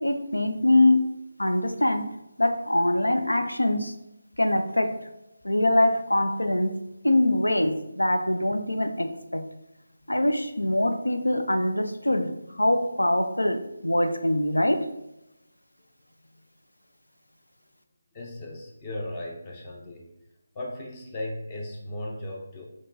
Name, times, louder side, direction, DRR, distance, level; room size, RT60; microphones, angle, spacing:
voice 1, 0.0-2.0 2.4-3.9 4.4-5.0 5.4-6.8 7.0-9.4 10.1-14.9, left 1 dB, 80° left, 7 dB, 0.5 m, -23 dB
voice 2, 18.1-20.1 20.5-22.7, left 1 dB, 20° left, -1 dB, 0.7 m, -36 dB
4.4 x 3.0 x 3.8 m, 0.89 s
figure-of-eight pair, 155°, 0 cm